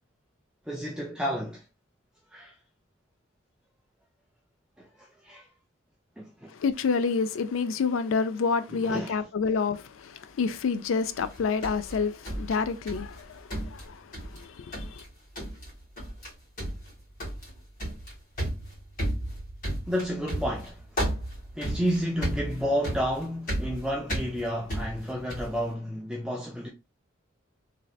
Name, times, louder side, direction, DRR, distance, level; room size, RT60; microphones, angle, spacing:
voice 1, 0.7-1.6 2.3-2.5 4.8-5.5 6.2-6.5 8.8-9.1 19.9-20.9 21.5-26.7, equal, 5° right, 0.4 m, -31 dB
voice 2, 6.5-15.0, left 5 dB, 80° left, 0.4 m, -28 dB
sound 1, 11.2-13.2 13.5-14.4 14.7-15.1 15.4-15.7 16.0-16.3 16.6-25.6, right 1 dB, 45° left, 2.0 m, -33 dB
3.1 x 2.7 x 2.3 m
head